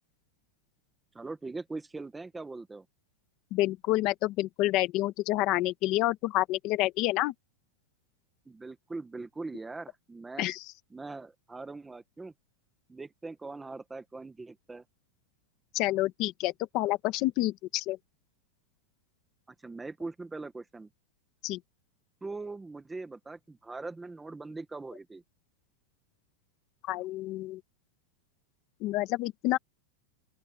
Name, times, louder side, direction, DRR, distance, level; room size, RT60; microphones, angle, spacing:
voice 1, 1.1-2.9 8.5-10.5 10.9-12.3 12.9-14.8 19.5-20.9 22.2-25.2, right 3 dB, 5° right, 1.1 m, -41 dB
voice 2, 3.5-7.3 10.4-10.6 15.7-18.0 21.4-21.6 26.9-27.6 28.8-29.6, left 17 dB, 30° left, 1.2 m, -28 dB
open air
supercardioid pair, 180°, 0 cm